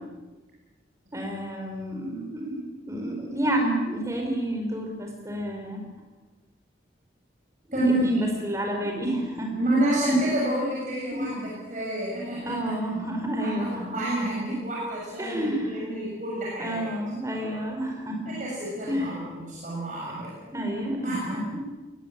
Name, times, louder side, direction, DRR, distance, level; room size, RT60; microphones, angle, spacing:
voice 1, 1.1-2.6 2.9-5.8 7.8-9.5 11.1-11.5 12.4-14.0 15.2-15.8 16.6-18.4 18.9-19.2 20.5-21.6, right 1 dB, 15° right, 2 dB, 5.0 m, -30 dB
voice 2, 7.7-8.1 9.6-12.7 13.4-16.9 17.3-17.6 18.3-20.4 21.0-21.4, right 1 dB, 40° right, -5 dB, 6.9 m, -29 dB
22.0 x 19.0 x 8.9 m, 1.2 s
head